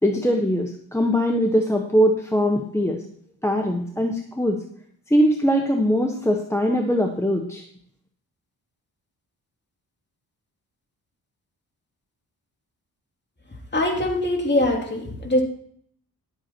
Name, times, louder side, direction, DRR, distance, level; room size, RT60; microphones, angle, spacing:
voice 1, 0.0-3.0 3.4-4.6 5.1-7.6, equal, 5° left, 3 dB, 1.2 m, -21 dB
voice 2, 13.7-15.4, left 1 dB, 25° left, 1 dB, 2.9 m, -22 dB
11.5 x 8.2 x 4.4 m, 0.63 s
cardioid pair, 75°, 38 cm